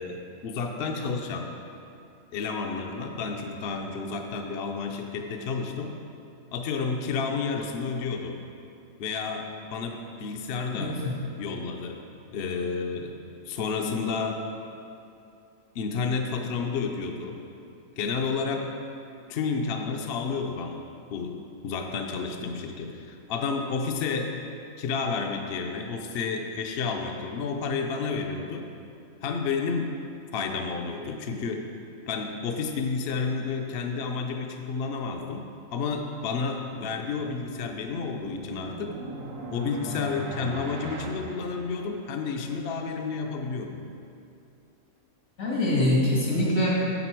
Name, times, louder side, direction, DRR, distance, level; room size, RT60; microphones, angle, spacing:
voice 1, 0.0-1.5 2.3-5.9 6.5-8.4 9.0-11.0 11.4-13.1 13.5-14.4 15.7-17.4 18.0-18.7 19.3-20.8 21.1-24.4 24.8-28.7 29.2-29.9 30.3-31.7 32.1-38.9 39.5-43.8, left 5 dB, 60° left, 3 dB, 0.7 m, -31 dB
voice 2, 10.7-11.1 45.4-46.7, left 1 dB, 80° left, -5 dB, 2.3 m, -24 dB
sound 1, 37.4-42.3, right 2 dB, 80° right, 1.3 m, -40 dB
8.2 x 6.7 x 4.5 m, 2.6 s
omnidirectional pair, 1.4 m